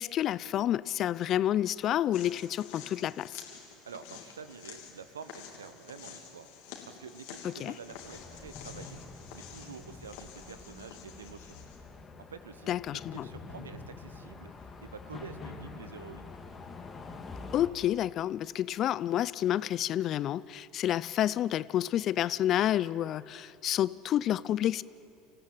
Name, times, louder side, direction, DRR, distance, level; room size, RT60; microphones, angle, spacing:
voice 1, 0.0-3.4 7.4-7.7 12.7-13.3 17.5-24.8, left 12 dB, 50° left, 20 dB, 0.5 m, -29 dB
sound 1, 2.1-11.8, left 7 dB, 65° left, 2.8 m, -49 dB
voice 2, 3.8-6.5 6.9-9.0 9.3-11.6 12.3-16.3, right 6 dB, 85° right, 12 dB, 1.0 m, -48 dB
sound 2, 7.8-17.7, left 4 dB, 30° left, 2.3 m, -46 dB
26.0 x 15.5 x 9.0 m, 2.7 s
hypercardioid pair, 75°, 0 cm